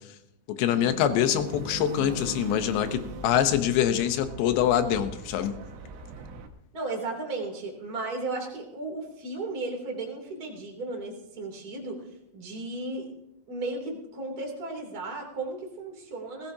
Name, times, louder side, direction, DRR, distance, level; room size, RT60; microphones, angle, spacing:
voice 1, 0.5-5.5, left 10 dB, 80° left, 9 dB, 3.0 m, -25 dB
sound 1, 0.7-6.5, right 3 dB, 90° right, 3.5 m, -39 dB
voice 2, 6.7-12.0 12.3-13.1 13.5-16.5, right 2 dB, 25° right, 0 dB, 2.9 m, -35 dB
20.0 x 16.5 x 2.8 m, 0.84 s
omnidirectional pair, 4.9 m